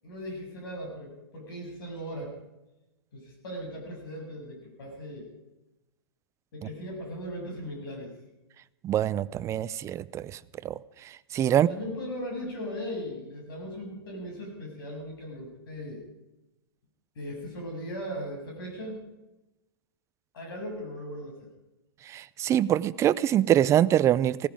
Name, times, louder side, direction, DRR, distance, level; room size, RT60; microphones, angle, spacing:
voice 1, 0.0-2.3 3.1-5.3 6.5-8.1 11.5-16.0 17.2-19.0 20.3-21.5, equal, 60° left, 1 dB, 7.6 m, -38 dB
voice 2, 8.8-10.8 11.3-11.7 22.1-24.5, right 11 dB, 20° right, 18 dB, 0.5 m, -24 dB
17.0 x 15.0 x 5.0 m, 0.99 s
hypercardioid pair, 110°, 13 cm